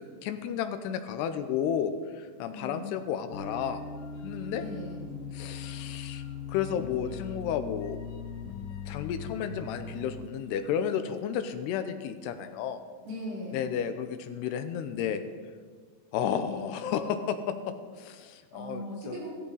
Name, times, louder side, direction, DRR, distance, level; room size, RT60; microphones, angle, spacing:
voice 1, 0.0-3.8 4.2-4.7 5.3-6.2 6.5-8.0 8.9-12.8 13.5-15.2 16.1-17.5 18.0-19.2, left 8 dB, 80° left, 9 dB, 2.8 m, -32 dB
voice 2, 2.5-2.9 4.6-5.0 13.0-13.7 18.5-19.3, equal, 85° right, -5 dB, 7.7 m, -39 dB
sound 1, 3.3-10.2, left 5 dB, 65° left, 2.4 m, -40 dB
17.0 x 14.0 x 4.0 m, 1.5 s
omnidirectional pair, 4.9 m